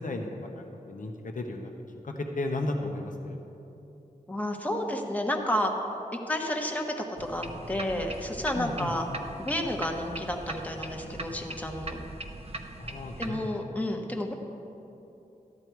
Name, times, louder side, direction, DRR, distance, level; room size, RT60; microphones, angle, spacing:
voice 1, 0.0-1.7 2.0-3.4 8.5-8.9 12.8-13.5 13.7-13.8, left 2 dB, 65° left, 2 dB, 1.0 m, -34 dB
voice 2, 4.3-5.7 6.3-9.1 9.4-12.0 13.2-14.3, left 1 dB, 10° left, 2 dB, 1.1 m, -31 dB
sound 1, 7.2-13.3, right 2 dB, 45° right, 0.9 m, -40 dB
13.0 x 9.8 x 4.7 m, 2.9 s
wide cardioid pair, 65°, 14 cm